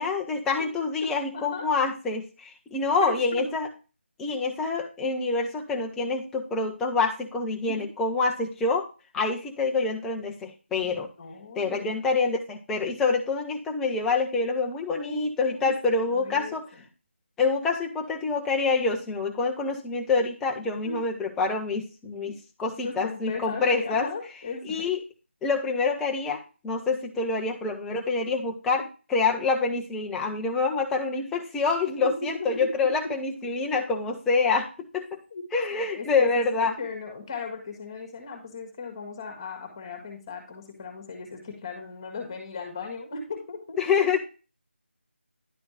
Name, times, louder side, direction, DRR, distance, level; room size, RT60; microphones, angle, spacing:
voice 1, 0.0-3.7 4.2-8.9 9.1-11.1 11.6-16.6 17.4-24.1 24.7-25.0 25.4-28.8 29.1-35.2 35.5-36.7 43.8-44.2, left 4 dB, 5° left, 2 dB, 0.4 m, -26 dB
voice 2, 1.0-1.7 3.0-3.5 7.7-7.8 10.8-11.9 15.0-15.7 16.1-16.8 20.8-21.0 22.2-22.3 22.8-24.9 28.7-28.8 31.1-31.2 32.0-32.7 35.3-35.4 35.7-43.8, left 4 dB, 20° left, 3 dB, 1.6 m, -37 dB
10.5 x 4.3 x 3.0 m, 0.33 s
figure-of-eight pair, 165°, 7 cm